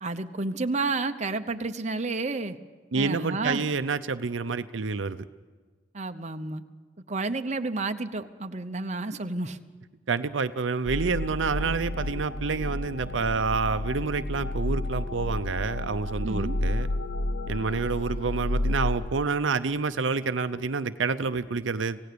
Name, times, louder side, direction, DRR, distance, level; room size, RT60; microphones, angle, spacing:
voice 1, 0.0-2.6 2.9-3.6 5.9-6.6 7.1-9.6 16.2-16.6, right 3 dB, 35° right, 7 dB, 0.9 m, -30 dB
voice 2, 2.9-5.3 10.1-16.9 17.5-22.0, right 4 dB, 80° right, 11 dB, 0.7 m, -28 dB
sound 1, 10.8-19.1, left 1 dB, 80° left, 0.8 m, -31 dB
27.0 x 17.0 x 6.9 m, 1.4 s
head